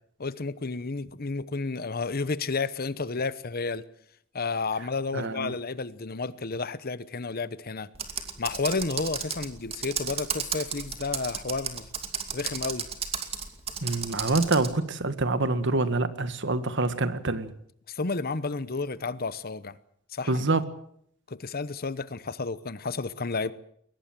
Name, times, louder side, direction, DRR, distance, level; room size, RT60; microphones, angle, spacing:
voice 1, 0.2-3.8 4.3-7.9 8.4-11.9 12.3-12.9 17.9-19.8 20.1-20.4 21.3-23.5, left 4 dB, 45° left, 1.0 m, -31 dB
voice 2, 5.1-5.5 13.8-17.5 20.3-20.6, right 2 dB, 60° right, 1.7 m, -26 dB
Computer keyboard, 8.0-14.7, right 6 dB, 30° right, 2.6 m, -33 dB
22.0 x 20.0 x 7.6 m
head